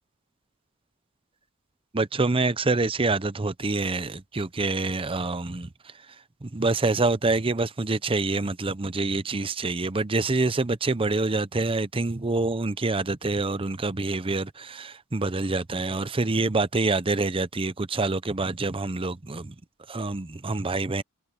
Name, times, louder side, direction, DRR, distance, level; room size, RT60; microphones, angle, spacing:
voice 1, 1.9-5.9 6.4-19.5 19.9-21.0, right 3 dB, 25° right, 0.7 m, -26 dB
head